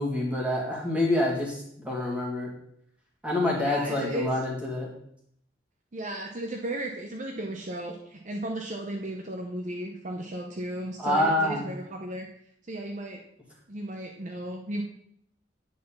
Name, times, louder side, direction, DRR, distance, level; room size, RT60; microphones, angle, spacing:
voice 1, 0.0-2.5 3.2-4.9 11.0-11.7, left 1 dB, 5° right, -3 dB, 1.9 m, -27 dB
voice 2, 3.6-4.3 5.9-12.3 12.7-13.2 13.7-14.8, right 1 dB, 40° right, 2 dB, 0.7 m, -35 dB
8.7 x 4.2 x 5.6 m, 0.71 s
head